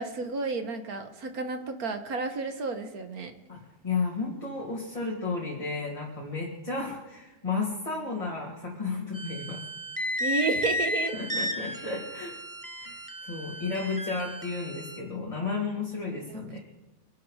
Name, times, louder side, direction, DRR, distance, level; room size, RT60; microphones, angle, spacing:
voice 1, 0.0-3.3 10.2-11.2 16.3-16.4, right 4 dB, 60° right, 7 dB, 1.8 m, -31 dB
voice 2, 3.8-9.6 11.1-12.3 12.8-16.6, left 4 dB, 20° left, -3 dB, 2.4 m, -33 dB
sound 1, 9.1-15.0, left 1 dB, 15° right, 1.1 m, -33 dB
25.0 x 11.0 x 4.9 m, 1.1 s
omnidirectional pair, 1.8 m